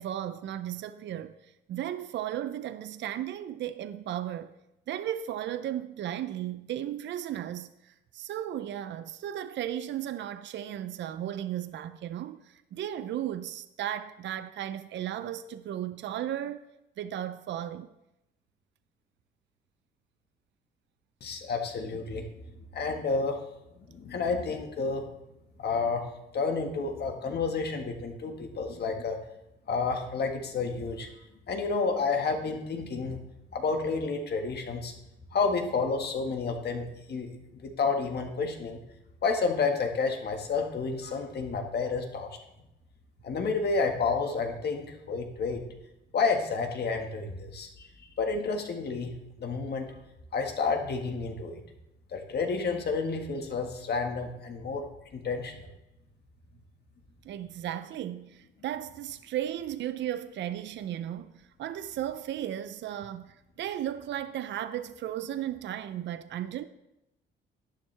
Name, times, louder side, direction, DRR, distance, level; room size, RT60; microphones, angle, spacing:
voice 1, 0.0-4.5 4.9-16.6 17.0-17.9 57.2-66.7, right 11 dB, 65° right, 0.5 m, -35 dB
voice 2, 21.2-22.3 22.7-23.4 23.8-25.0 25.6-26.0 26.3-29.2 29.7-31.1 31.5-33.2 33.5-34.9 35.3-38.8 39.2-42.3 43.2-45.6 46.1-47.9 48.2-49.9 50.3-51.6 52.1-54.8 55.1-55.7, left 4 dB, 55° left, 1.7 m, -30 dB
11.0 x 9.7 x 3.4 m
cardioid pair, 90°, 20 cm